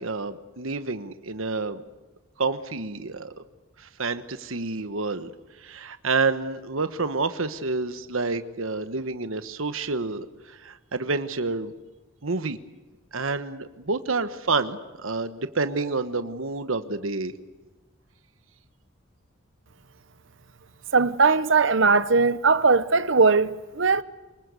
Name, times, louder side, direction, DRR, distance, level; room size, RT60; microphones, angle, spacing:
voice 1, 0.0-1.8 2.4-3.3 3.8-5.3 5.6-11.7 12.2-12.6 13.1-17.3, right 3 dB, 75° right, 1.2 m, -29 dB
voice 2, 20.9-24.0, right 4 dB, 60° right, 1.0 m, -19 dB
25.5 x 22.5 x 8.3 m
head